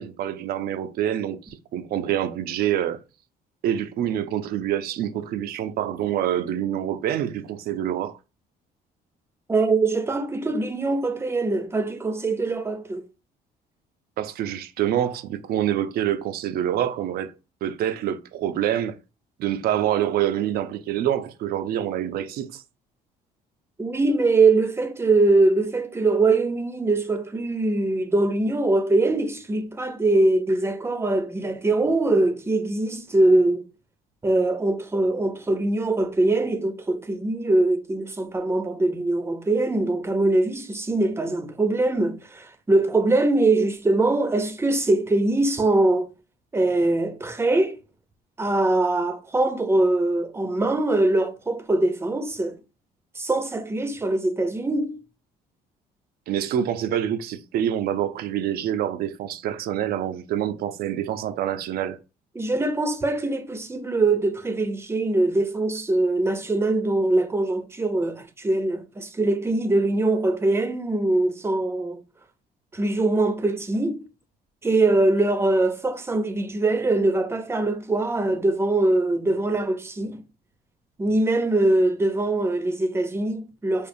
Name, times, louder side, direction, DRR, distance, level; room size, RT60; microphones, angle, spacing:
voice 1, 0.0-3.0 3.6-8.2 14.2-17.3 17.6-19.0 19.4-22.6 56.3-62.0, right 11 dB, 65° right, 0.5 m, -26 dB
voice 2, 9.5-13.1 23.8-33.7 34.2-46.1 46.5-47.8 48.4-52.6 53.1-55.0 62.3-72.0 72.7-74.1 74.6-80.2 81.0-83.9, right 2 dB, 15° right, 0.6 m, -22 dB
5.0 x 2.4 x 2.6 m
cardioid pair, 110°, 17 cm